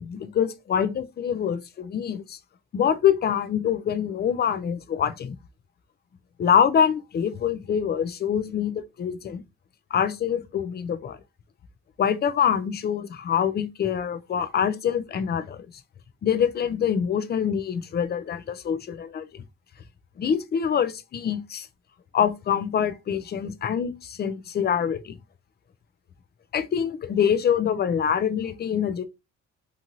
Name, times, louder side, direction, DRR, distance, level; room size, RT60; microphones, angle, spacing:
voice 1, 0.0-2.4 2.7-5.4 6.4-9.4 9.9-11.2 12.0-15.7 16.2-19.4 20.2-21.7 22.1-25.2 26.5-29.1, left 8 dB, 35° left, 0.4 m, -25 dB
2.6 x 2.5 x 2.9 m
cardioid pair, 90°, 30 cm